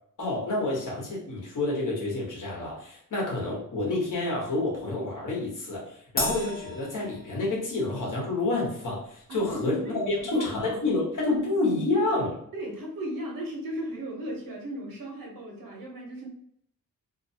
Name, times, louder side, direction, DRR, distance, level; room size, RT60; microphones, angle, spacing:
voice 1, 0.2-12.4, left 2 dB, 65° left, -3 dB, 1.2 m, -29 dB
Crash cymbal, 6.2-7.8, left 2 dB, 25° left, 0.7 m, -33 dB
voice 2, 9.3-10.8 12.5-16.3, right 1 dB, 85° right, -1 dB, 0.9 m, -36 dB
2.6 x 2.3 x 2.7 m, 0.68 s
wide cardioid pair, 105°, 33 cm